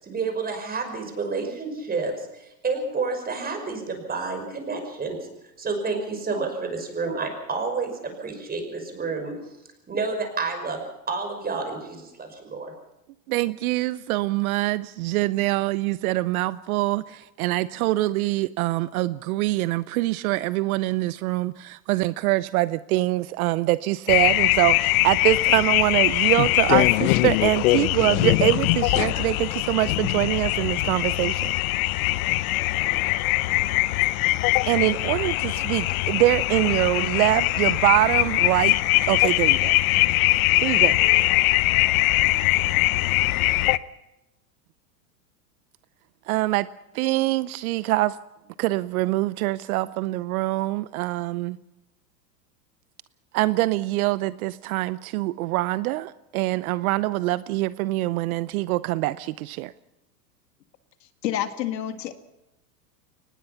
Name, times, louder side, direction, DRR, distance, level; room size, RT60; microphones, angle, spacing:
voice 1, 0.0-5.2 5.6-9.3 9.9-10.8 11.1-12.7, right 4 dB, 20° right, 5 dB, 5.7 m, -29 dB
voice 2, 13.3-31.5 34.7-38.7 39.1-39.8 40.6-41.0 46.3-46.7 46.9-48.1 48.6-51.6 53.3-59.7, right 18 dB, 60° right, 16 dB, 0.8 m, -24 dB
sound 1, 24.1-43.8, left 19 dB, 60° left, 0.9 m, -22 dB
voice 3, 61.2-62.1, left 11 dB, 80° left, 8 dB, 2.0 m, -28 dB
23.5 x 19.5 x 5.8 m, 0.92 s
hypercardioid pair, 115°, 49 cm